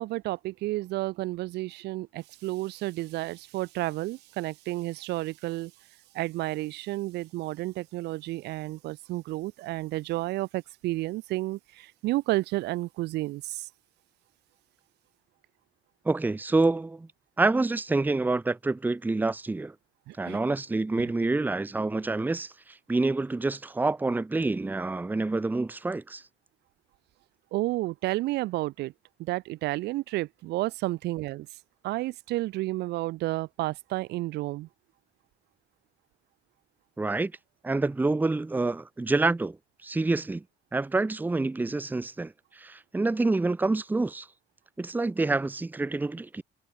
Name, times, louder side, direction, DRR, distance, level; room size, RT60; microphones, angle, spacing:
voice 1, 0.0-5.7 6.1-13.6 20.1-20.4 27.5-28.9 29.2-31.5 31.8-34.7, right 18 dB, 80° right, 1.0 m, -31 dB
voice 2, 16.0-17.1 17.4-19.7 20.2-22.5 22.9-26.2 37.0-37.3 37.6-39.6 39.8-40.4 40.7-44.3 44.8-46.4, right 3 dB, 10° right, 0.8 m, -27 dB
cardioid pair, 110°, 17 cm